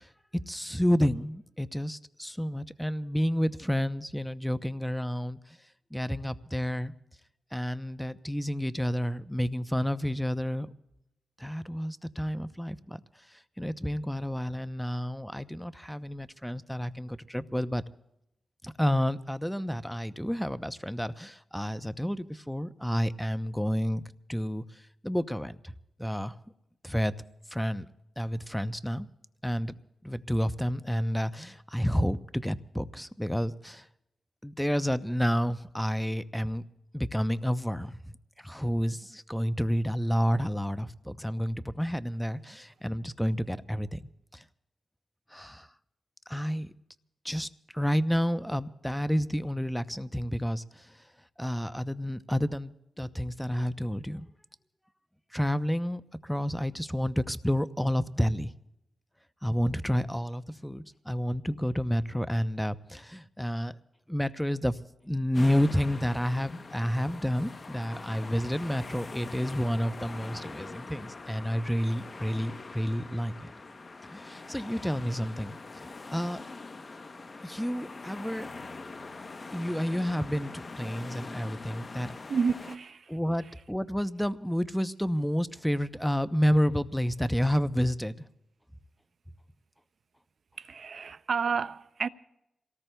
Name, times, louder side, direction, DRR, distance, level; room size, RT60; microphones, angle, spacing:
voice 1, 0.0-5.6 5.9-6.9 7.5-10.7 11.4-13.0 13.3-17.8 18.6-24.0 24.3-25.7 26.0-26.4 26.8-27.2 27.5-27.9 28.2-29.1 29.4-29.7 30.0-33.9 34.4-36.6 36.9-44.0 44.3-44.4 45.3-45.7 46.3-46.7 47.2-50.9 51.4-54.3 55.3-58.5 59.4-63.8 64.1-73.5 74.0-76.4 77.4-78.5 79.5-82.1 83.1-88.3, equal, 5° left, 0.6 m, -30 dB
sound 1, 65.3-82.8, left 3 dB, 45° left, 0.8 m, -43 dB
voice 2, 82.3-83.1 90.6-92.1, right 5 dB, 65° right, 0.4 m, -30 dB
27.5 x 18.0 x 2.3 m
cardioid pair, 50°, 0 cm